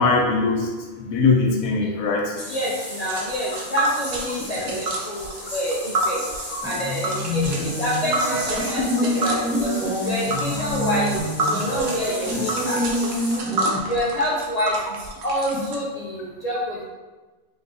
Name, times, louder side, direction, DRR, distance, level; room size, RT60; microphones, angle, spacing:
voice 1, 0.0-2.3 4.6-4.7 8.7-8.8, left 4 dB, 80° left, 0 dB, 1.1 m, -21 dB
sound 1, 2.4-13.4, left 1 dB, 30° left, 1.4 m, -36 dB
voice 2, 2.5-6.2 6.6-9.7 10.0-11.1 11.4-13.6 13.9-16.8, equal, 60° left, -5 dB, 0.4 m, -27 dB
Tick, 3.1-15.7, right 2 dB, 75° right, 1.1 m, -29 dB
sound 2, 6.6-13.8, equal, 5° right, 0.6 m, -26 dB
5.4 x 2.9 x 2.6 m, 1.3 s
omnidirectional pair, 1.5 m